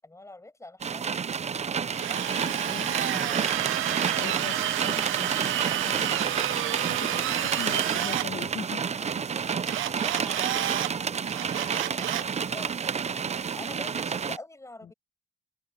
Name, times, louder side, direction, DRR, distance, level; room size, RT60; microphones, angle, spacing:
voice 1, 0.0-1.7 4.9-5.0 7.9-8.1 8.8-13.3 13.5-14.9, left 2 dB, 15° left, 7.4 m, -47 dB
sound 1, 0.8-14.4, right 6 dB, 35° right, 0.7 m, -30 dB
Drill, 1.9-8.3 9.7-10.9 11.3-12.3, right 13 dB, 85° right, 1.1 m, -30 dB
voice 2, 2.4-8.9 14.8-14.9, left 8 dB, 55° left, 1.5 m, -42 dB
open air
cardioid pair, 90°, 20 cm